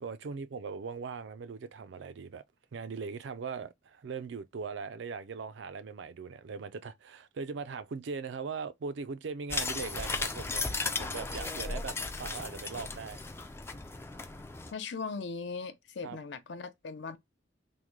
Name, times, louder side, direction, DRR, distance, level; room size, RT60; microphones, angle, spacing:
voice 1, 0.0-2.4 2.7-10.7 11.0-13.2 16.0-16.2, right 5 dB, 65° right, 0.4 m, -40 dB
sound 1, 9.5-14.7, left 3 dB, 15° left, 0.3 m, -36 dB
voice 2, 14.7-17.2, left 4 dB, 65° left, 0.5 m, -39 dB
3.6 x 2.2 x 3.0 m
head